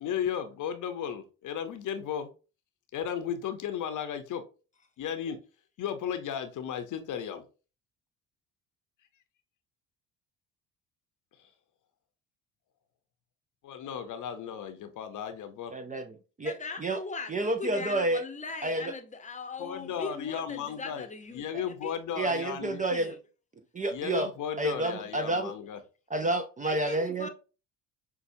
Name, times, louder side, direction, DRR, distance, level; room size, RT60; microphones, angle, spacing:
voice 1, 0.0-2.3 2.9-4.4 5.0-5.4 5.8-7.4 13.6-15.7 19.6-21.1 21.3-22.8 23.9-25.8, left 8 dB, 55° left, 0.8 m, -35 dB
voice 2, 15.7-16.5 16.8-17.0 17.3-18.2 18.6-18.9 21.5-21.6 22.2-23.1 23.7-24.3 24.6-25.5 26.1-27.3, right 2 dB, 20° right, 0.5 m, -29 dB
voice 3, 16.4-21.5 21.8-21.9 22.9-23.2 26.6-27.3, left 4 dB, 20° left, 0.8 m, -39 dB
5.6 x 2.3 x 2.6 m
supercardioid pair, 65°, 37 cm